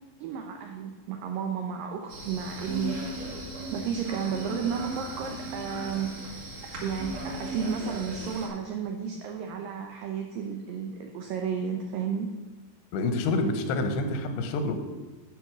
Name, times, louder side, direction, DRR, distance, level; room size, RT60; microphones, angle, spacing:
voice 1, 0.2-3.1 3.7-6.5 6.8-12.3, right 7 dB, 85° right, 3 dB, 2.0 m, -33 dB
sound 1, 2.1-8.5, right 1 dB, 45° right, 2.9 m, -37 dB
voice 2, 12.9-14.7, left 2 dB, 85° left, 6 dB, 3.2 m, -27 dB
11.0 x 5.0 x 6.1 m, 1.2 s
omnidirectional pair, 4.9 m